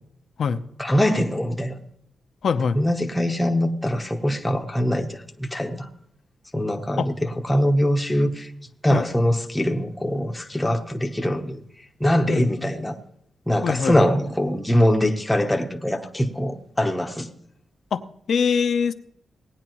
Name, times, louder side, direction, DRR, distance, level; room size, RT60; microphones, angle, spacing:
voice 1, 0.8-1.8 2.7-5.9 6.5-8.5 8.8-11.6 12.0-12.9 13.5-17.3, equal, 5° left, 2 dB, 0.9 m, -23 dB
voice 2, 2.4-2.8 7.0-7.1 8.9-9.0 12.3-12.6 13.6-14.0 17.9-18.0 18.3-18.9, left 6 dB, 65° left, 9 dB, 0.7 m, -22 dB
18.0 x 9.7 x 3.0 m, 0.70 s
wide cardioid pair, 135°, 0 cm